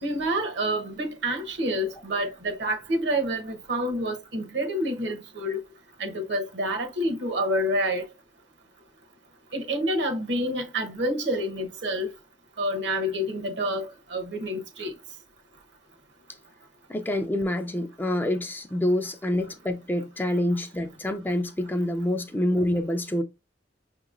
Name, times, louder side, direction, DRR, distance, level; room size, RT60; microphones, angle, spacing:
voice 1, 0.0-5.6 6.0-8.0 9.5-12.1 12.6-14.9, equal, 70° right, 0.9 m, -28 dB
voice 2, 16.9-23.2, left 1 dB, 10° left, 0.4 m, -27 dB
5.6 x 2.9 x 2.4 m
head